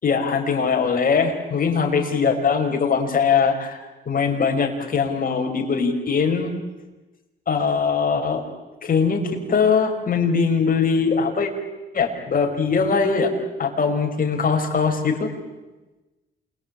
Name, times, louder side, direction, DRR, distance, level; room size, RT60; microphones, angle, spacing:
voice 1, 0.0-3.8 4.1-6.5 7.5-8.4 8.8-11.5 11.9-13.3 13.6-15.3, left 5 dB, 45° left, 3 dB, 5.6 m, -21 dB
28.0 x 21.5 x 9.0 m, 1.1 s
cardioid pair, 90°, 20 cm